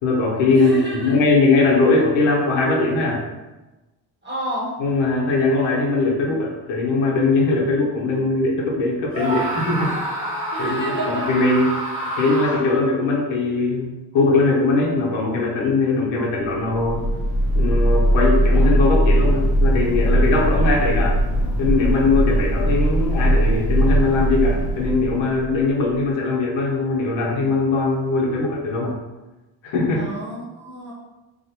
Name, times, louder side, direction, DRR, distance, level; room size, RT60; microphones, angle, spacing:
voice 1, 0.0-0.7 1.0-3.2 4.8-9.9 10.6-10.7 11.1-11.7 12.2-17.0 17.5-21.2 21.6-29.0 29.6-30.1, left 3 dB, 80° left, -2 dB, 0.8 m, -20 dB
voice 2, 0.5-1.2 4.2-4.7 10.5-11.3 30.0-30.9, right 1 dB, 25° right, -6 dB, 0.9 m, -30 dB
Screaming, 9.1-12.9, right 1 dB, 85° right, 0.8 m, -27 dB
sound 1, 16.6-25.9, right 1 dB, 50° left, 0.6 m, -19 dB
2.5 x 2.1 x 2.8 m, 1.1 s
cardioid pair, 115°, 47 cm